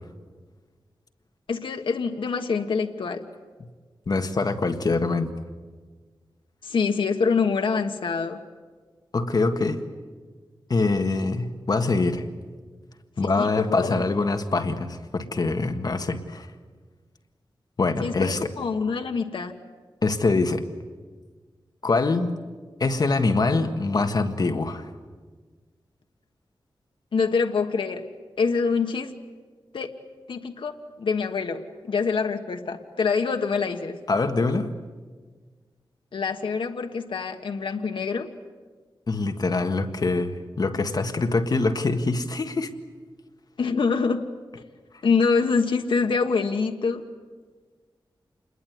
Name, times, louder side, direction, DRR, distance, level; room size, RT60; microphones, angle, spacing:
voice 1, 1.5-3.2 6.6-8.4 13.2-14.0 18.0-19.5 27.1-28.0 28.4-29.1 29.7-29.9 30.3-34.0 36.1-38.3 43.6-44.3 45.0-47.1, left 5 dB, 80° left, 5 dB, 1.4 m, -25 dB
voice 2, 4.1-5.3 9.1-9.8 10.7-12.2 13.2-16.5 17.8-18.5 20.0-20.6 21.8-22.4 22.8-24.9 34.1-34.7 39.1-42.7, left 3 dB, 50° left, 7 dB, 1.7 m, -24 dB
28.0 x 21.0 x 9.5 m, 1.5 s
wide cardioid pair, 120°, 9 cm